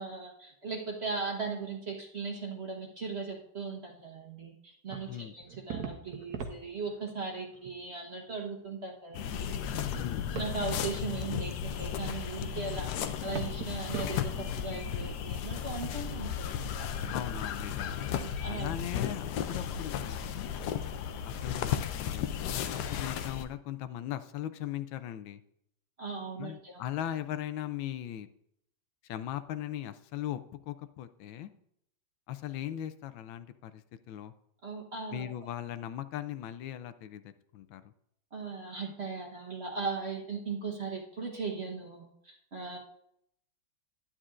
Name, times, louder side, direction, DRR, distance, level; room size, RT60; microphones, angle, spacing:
voice 1, 0.0-9.5 10.3-12.9 13.2-16.9 18.1-18.7 26.0-26.8 34.6-35.3 38.3-42.8, right 4 dB, 40° right, -1 dB, 1.1 m, -38 dB
sound 1, 4.9-7.2 7.5-7.7 8.3-8.4 9.1-10.6 10.9-15.1, right 6 dB, 60° right, 1.3 m, -41 dB
sound 2, 9.1-23.5, left 8 dB, 70° left, 1.0 m, -34 dB
voice 2, 10.0-10.3 17.1-18.0 18.4-20.5 21.2-25.4 26.4-28.3 29.1-31.5 32.3-33.8 34.1-34.3 35.1-37.8, left 11 dB, 85° left, 12 dB, 1.4 m, -39 dB
10.5 x 10.0 x 2.5 m, 0.73 s
omnidirectional pair, 2.1 m